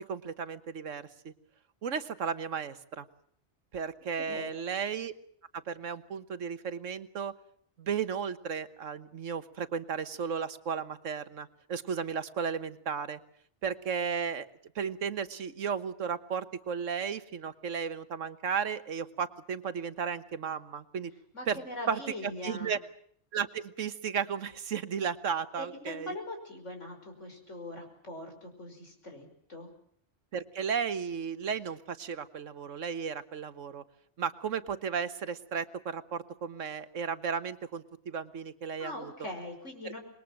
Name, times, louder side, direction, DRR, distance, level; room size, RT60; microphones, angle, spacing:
voice 1, 0.0-1.3 1.8-3.0 3.7-5.1 5.5-7.3 7.8-13.2 13.6-14.5 14.7-21.1 21.5-21.6 21.9-22.8 23.3-26.1 30.3-33.8 34.2-39.1 39.8-40.0, right 6 dB, 85° right, 12 dB, 1.6 m, -34 dB
voice 2, 4.1-4.5 21.3-22.7 25.6-29.7 38.8-40.0, left 1 dB, 75° left, 4 dB, 6.0 m, -42 dB
26.5 x 21.5 x 7.6 m, 0.62 s
omnidirectional pair, 1.3 m